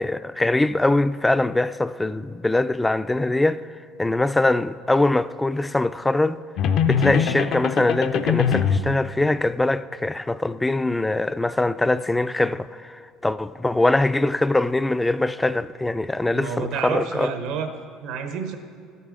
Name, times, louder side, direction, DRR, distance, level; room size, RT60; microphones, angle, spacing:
voice 1, 0.0-3.7 4.0-6.4 6.8-17.3, left 2 dB, 10° left, 0.3 m, -22 dB
sound 1, 6.6-8.9, left 7 dB, 65° left, 0.5 m, -22 dB
voice 2, 16.3-17.7 18.0-18.6, right 6 dB, 70° right, 0.9 m, -29 dB
13.5 x 8.1 x 3.8 m
supercardioid pair, 85°, 0 cm